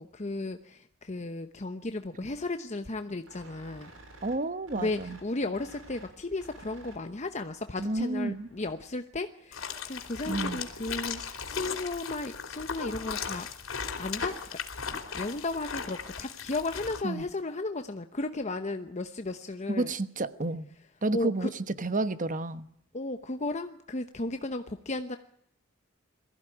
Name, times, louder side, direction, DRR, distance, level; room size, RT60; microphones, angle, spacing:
voice 1, 0.0-3.9 4.7-13.5 14.0-14.6 14.9-19.9 21.1-21.5 22.9-25.2, left 2 dB, 35° left, 8 dB, 1.0 m, -35 dB
sound 1, 3.3-9.0, right 2 dB, 85° right, 6.3 m, -53 dB
voice 2, 4.2-5.2 7.8-8.5 10.3-10.6 17.0-17.2 19.7-20.7 21.0-22.7, right 2 dB, 40° right, 13 dB, 1.1 m, -30 dB
sound 2, 9.5-17.0, left 6 dB, 85° left, 3.3 m, -37 dB
22.5 x 15.0 x 9.9 m, 0.71 s
head